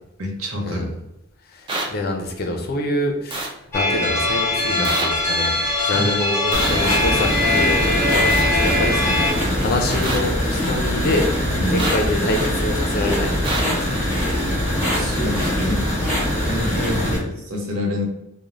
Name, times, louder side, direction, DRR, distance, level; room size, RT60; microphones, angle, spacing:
voice 1, 0.2-0.9 4.7-4.9 5.9-6.1 11.5-11.9 14.9-15.9 16.4-18.0, left 1 dB, 85° right, 0 dB, 0.7 m, -27 dB
voice 2, 1.5-5.6 5.8-11.3 11.7-14.0 16.9-17.3, left 1 dB, 45° left, 2 dB, 0.4 m, -26 dB
sound 1, 1.7-1.9 3.3-3.5 4.8-5.1 6.5-6.7 8.3-8.5 10.0-10.2 11.8-12.0 13.4-13.6, right 2 dB, 25° right, 0.3 m, -25 dB
sound 2, 3.7-9.3, left 2 dB, 10° left, 1.0 m, -21 dB
sound 3, 6.5-17.2, left 1 dB, 5° right, 1.3 m, -22 dB
3.0 x 2.1 x 2.5 m, 0.84 s
head